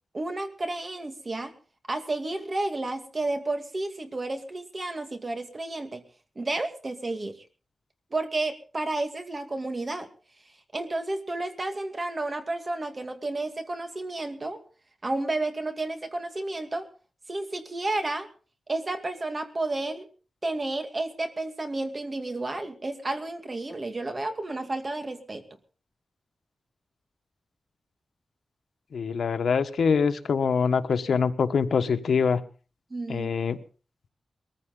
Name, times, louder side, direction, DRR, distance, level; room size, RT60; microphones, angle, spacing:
voice 1, 0.1-1.5 1.9-6.0 6.4-7.4 8.1-10.1 10.7-14.6 15.0-16.9 17.3-18.3 18.7-20.1 20.4-25.4 32.9-33.3, right 2 dB, 30° right, 6 dB, 2.3 m, -31 dB
voice 2, 28.9-32.4 33.1-33.6, left 6 dB, 90° left, 9 dB, 1.3 m, -24 dB
21.5 x 15.0 x 3.9 m, 0.36 s
wide cardioid pair, 150°, 0 cm